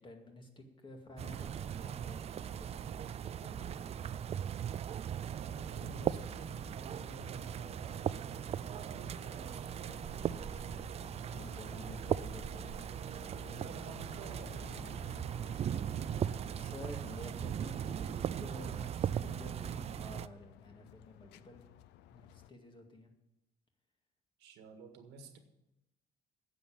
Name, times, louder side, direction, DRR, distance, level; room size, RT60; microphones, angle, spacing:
voice 1, 0.0-4.3 11.3-12.7 16.5-21.6 22.1-23.1, left 1 dB, 30° left, 3 dB, 2.2 m, -51 dB
sound 1, 1.2-20.3, right 9 dB, 40° right, 0.4 m, -38 dB
voice 2, 5.1-8.1 8.6-10.1 13.3-14.8 24.4-25.4, right 4 dB, 90° right, 6 dB, 1.8 m, -51 dB
sound 2, 5.7-22.5, left 13 dB, 85° left, 0.5 m, -56 dB
sound 3, 6.2-12.1, equal, 5° left, 1.3 m, -57 dB
10.0 x 7.3 x 9.2 m, 0.93 s
cardioid pair, 110°, 17 cm